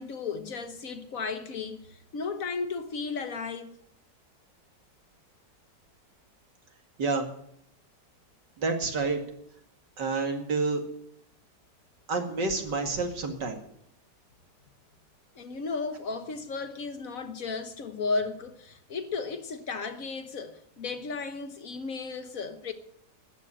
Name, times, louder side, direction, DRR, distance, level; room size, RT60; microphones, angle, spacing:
voice 1, 0.0-3.7 15.4-22.7, left 4 dB, 55° left, 1.4 m, -34 dB
voice 2, 8.6-9.2 10.0-10.8 12.1-13.6, right 3 dB, 75° right, 2.8 m, -28 dB
13.0 x 9.7 x 8.7 m
omnidirectional pair, 1.9 m